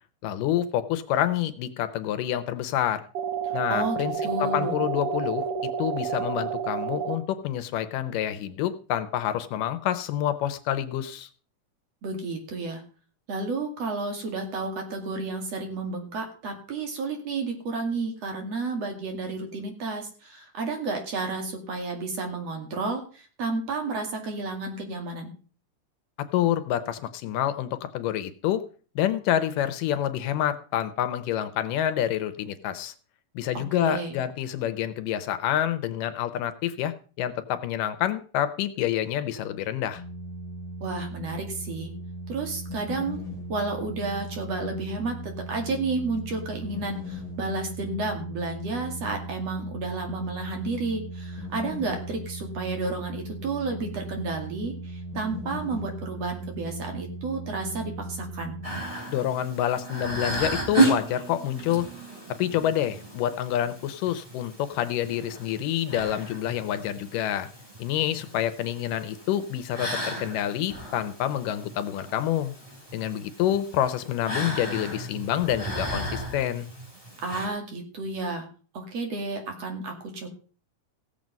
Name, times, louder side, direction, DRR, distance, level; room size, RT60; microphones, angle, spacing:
voice 1, 0.2-3.1 3.5-4.1 4.4-11.3 26.2-28.6 29.0-32.9 33.4-40.0 59.1-61.9 62.4-67.5 67.8-72.5 72.9-76.7, left 11 dB, 80° left, 11 dB, 2.3 m, -27 dB
sound 1, 3.1-7.1, right 7 dB, 80° right, 0.9 m, -30 dB
voice 2, 4.2-4.8 12.0-12.8 13.3-25.3 33.7-34.2 40.8-41.9 42.3-43.2 43.5-58.6 77.2-78.5 78.7-80.3, right 3 dB, 50° right, 3 dB, 3.2 m, -31 dB
sound 2, 39.9-58.8, right 1 dB, 10° left, 5.4 m, -38 dB
sound 3, 58.6-77.5, right 2 dB, 10° right, 4.2 m, -33 dB
16.5 x 7.5 x 5.2 m, 0.40 s
omnidirectional pair, 3.8 m